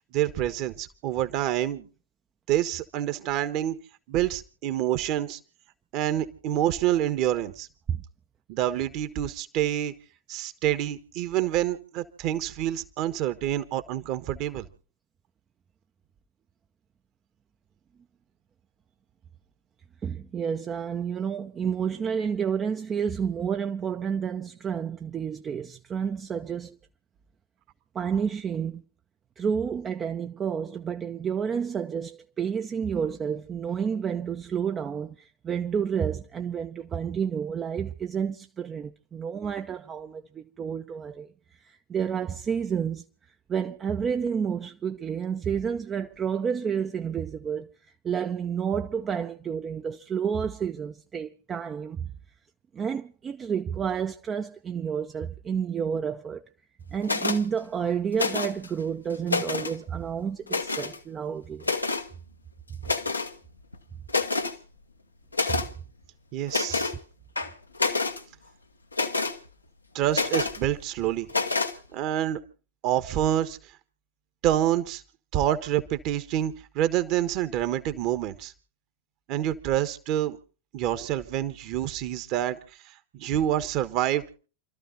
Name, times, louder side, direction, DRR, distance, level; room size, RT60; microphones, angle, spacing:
voice 1, 0.1-1.9 2.5-3.8 4.1-5.4 5.9-7.7 8.5-9.9 10.3-14.7 66.3-66.9 69.9-71.3 71.9-72.4 72.8-73.6 74.4-75.0 75.3-78.5 79.3-80.4 80.7-82.6 83.1-84.2, right 12 dB, 40° right, 1.4 m, -27 dB
voice 2, 20.0-26.8 27.9-28.8 29.4-41.3 41.6-43.0 43.5-47.7 48.0-52.1 52.7-56.4 56.9-61.7 65.5-65.6, right 7 dB, 25° right, 0.7 m, -30 dB
sound 1, 57.0-57.4 58.1-58.7 59.1-59.8 60.5-61.0 61.6-62.1 62.8-63.3 63.7-63.8 64.1-64.6 65.3-65.7 66.5-67.0 67.4-68.2 68.9-69.4 70.1-70.6 71.3-71.7, left 3 dB, 80° left, 1.1 m, -27 dB
29.0 x 13.5 x 2.8 m
figure-of-eight pair, 90°, 0 cm